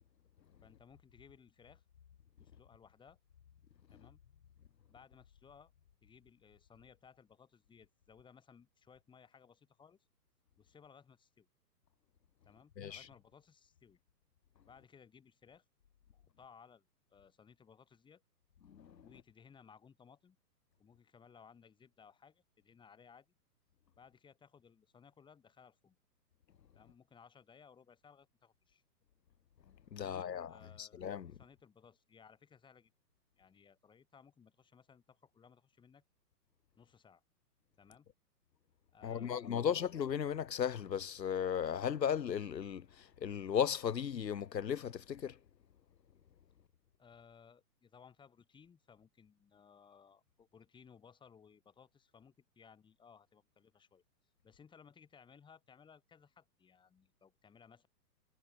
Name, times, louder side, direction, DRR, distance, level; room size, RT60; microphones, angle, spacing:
voice 1, 0.6-1.8 2.4-3.2 3.9-4.2 4.9-5.7 6.0-10.0 10.6-11.5 12.4-14.0 14.7-15.7 16.1-18.2 19.0-20.4 20.8-23.3 24.0-26.0 26.7-28.8 30.0-32.9 33.4-36.0 36.8-37.2 37.8-38.1 38.9-39.9 47.0-54.0 54.4-57.9, left 6 dB, 10° left, 7.0 m, -61 dB
voice 2, 29.9-31.3 39.0-45.4, left 8 dB, 85° left, 1.8 m, -36 dB
hypercardioid pair, 155°, 49 cm